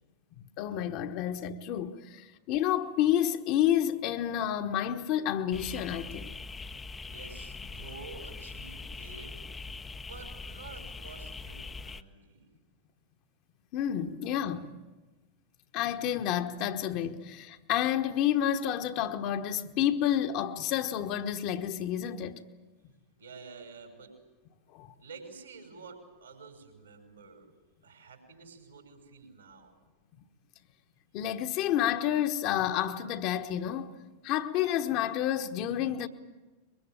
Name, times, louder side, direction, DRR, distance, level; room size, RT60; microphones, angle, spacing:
voice 1, 0.6-6.3 13.7-14.7 15.7-22.4 24.7-24.9 31.1-34.0 34.2-36.1, left 11 dB, 40° left, 1.3 m, -29 dB
sound 1, 5.5-12.0, left 4 dB, 15° left, 0.8 m, -42 dB
voice 2, 7.1-9.4 10.0-12.5 23.2-24.1 25.0-27.5 27.8-29.7, right 4 dB, 75° right, 5.5 m, -49 dB
23.0 x 23.0 x 9.0 m
figure-of-eight pair, 90°, 0 cm